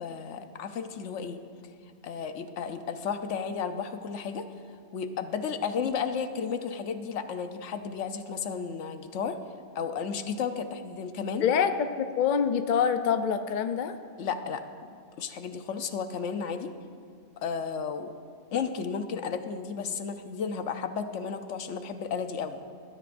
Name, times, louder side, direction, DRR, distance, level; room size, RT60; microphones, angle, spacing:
voice 1, 0.0-1.4 2.0-4.5 4.9-9.4 9.7-11.4 14.2-14.9 15.2-16.7 17.4-18.1 18.5-22.6, left 6 dB, 70° left, 8 dB, 1.0 m, -33 dB
voice 2, 11.4-14.0, left 7 dB, 55° left, 9 dB, 0.6 m, -25 dB
20.5 x 13.5 x 2.5 m, 2.2 s
omnidirectional pair, 1.3 m